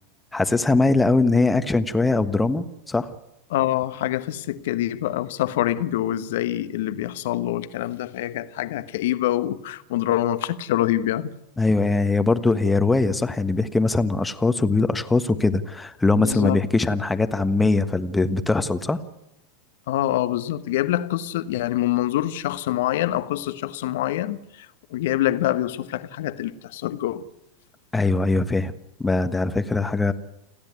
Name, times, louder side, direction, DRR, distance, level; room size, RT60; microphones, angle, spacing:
voice 1, 0.3-3.1 11.6-19.0 27.9-28.7 29.0-30.1, left 3 dB, 10° left, 1.4 m, -21 dB
voice 2, 3.5-11.3 16.1-16.6 19.9-27.2, left 13 dB, 70° left, 1.2 m, -25 dB
29.5 x 10.5 x 9.6 m
hypercardioid pair, 95°, 0 cm